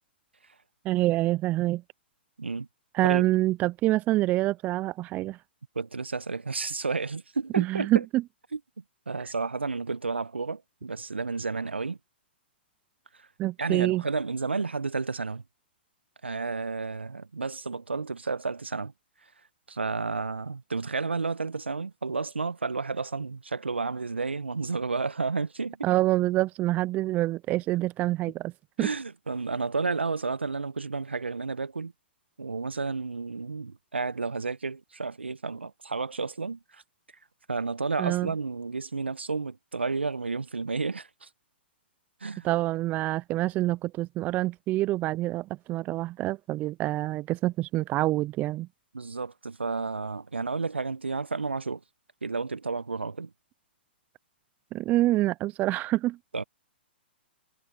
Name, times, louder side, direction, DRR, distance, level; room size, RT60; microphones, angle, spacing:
voice 1, 0.8-1.8 2.9-5.4 7.6-8.2 13.4-14.0 25.8-28.5 28.8-28.9 38.0-38.3 42.4-48.7 54.7-56.2, right 16 dB, 25° right, 0.7 m, -26 dB
voice 2, 5.7-8.0 8.5-8.6 9.1-12.0 13.6-15.4 16.2-18.9 19.7-25.9 28.8-31.9 32.4-36.8 37.5-41.3 42.2-42.5 48.9-51.8 52.2-53.3 56.3-56.4, right 4 dB, 85° right, 1.4 m, -31 dB
figure-of-eight pair, 115°, 6 cm